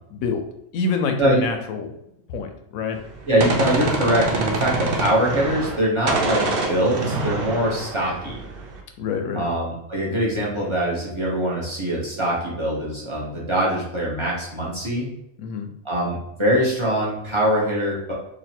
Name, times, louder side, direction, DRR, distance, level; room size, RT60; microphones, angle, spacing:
voice 1, 0.1-0.4 0.7-1.9 2.3-3.0 9.0-9.4 15.4-15.7, left 4 dB, 75° left, 6 dB, 1.0 m, -26 dB
Gunshot gunfire, 3.0-5.8 6.1-8.8, right 3 dB, 55° right, 0.6 m, -26 dB
voice 2, 3.3-8.4 9.3-15.1 15.8-18.1, right 1 dB, 25° right, -5 dB, 0.9 m, -23 dB
3.0 x 2.7 x 4.3 m, 0.80 s
omnidirectional pair, 1.5 m